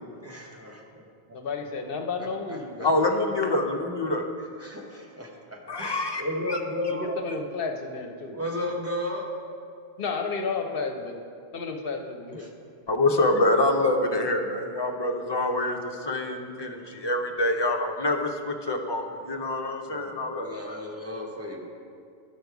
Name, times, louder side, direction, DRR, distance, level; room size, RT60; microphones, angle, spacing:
voice 1, 0.1-1.0 1.3-1.4 2.2-2.9 4.4-7.2 8.3-9.3 12.4-12.5 19.9-21.7, left 1 dB, 15° right, -1 dB, 0.9 m, -34 dB
voice 2, 1.3-2.9 6.9-8.4 10.0-11.2 11.5-12.5, left 4 dB, 60° left, 4 dB, 0.8 m, -32 dB
voice 3, 2.8-4.2 5.7-6.2 6.5-6.6 12.9-15.8 16.1-20.8, left 2 dB, 30° left, 3 dB, 0.5 m, -26 dB
11.5 x 5.2 x 4.7 m, 2.3 s
omnidirectional pair, 1.1 m